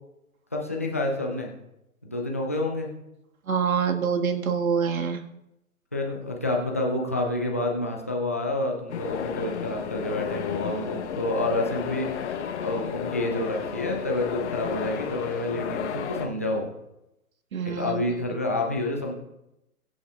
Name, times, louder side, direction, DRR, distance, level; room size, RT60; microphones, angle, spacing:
voice 1, 0.5-1.5 2.0-2.9 5.9-12.1 12.6-16.7 17.6-19.1, left 2 dB, 10° left, 0 dB, 0.3 m, -28 dB
voice 2, 3.5-5.2 17.5-18.0, right 6 dB, 65° right, 4 dB, 1.7 m, -25 dB
sound 1, 8.9-16.3, left 8 dB, 50° left, 1.0 m, -33 dB
22.5 x 8.5 x 2.3 m, 0.90 s
figure-of-eight pair, 125°, 45 cm